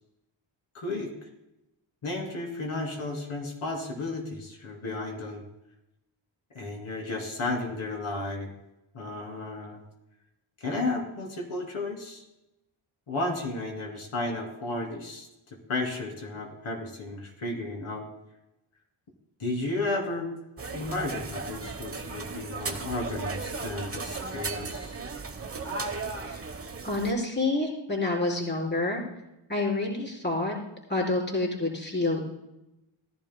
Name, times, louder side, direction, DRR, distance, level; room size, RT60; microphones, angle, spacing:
voice 1, 0.7-1.1 2.0-5.4 6.5-8.5 8.9-9.8 10.6-12.2 13.1-15.3 15.7-18.0 19.4-20.3 20.7-24.9, left 2 dB, 80° left, 0 dB, 3.0 m, -33 dB
sound 1, 20.6-27.1, right 4 dB, 30° right, 1.1 m, -36 dB
voice 2, 26.8-29.0 29.5-30.5 30.9-32.2, left 2 dB, 20° left, -2 dB, 3.9 m, -28 dB
18.0 x 11.0 x 2.2 m, 0.92 s
cardioid pair, 70°, 49 cm